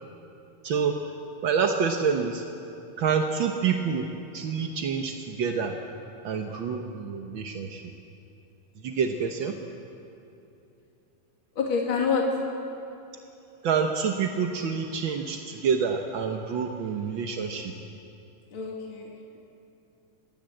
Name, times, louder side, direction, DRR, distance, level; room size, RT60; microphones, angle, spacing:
voice 1, 0.6-1.0 1.4-2.4 3.0-4.1 4.3-5.7 6.2-7.9 8.8-9.5 13.6-17.7, right 6 dB, 60° right, 3 dB, 1.3 m, -27 dB
voice 2, 11.6-12.2 18.5-19.1, left 6 dB, 40° left, -1 dB, 2.9 m, -27 dB
26.0 x 22.0 x 7.8 m, 2.9 s
omnidirectional pair, 3.6 m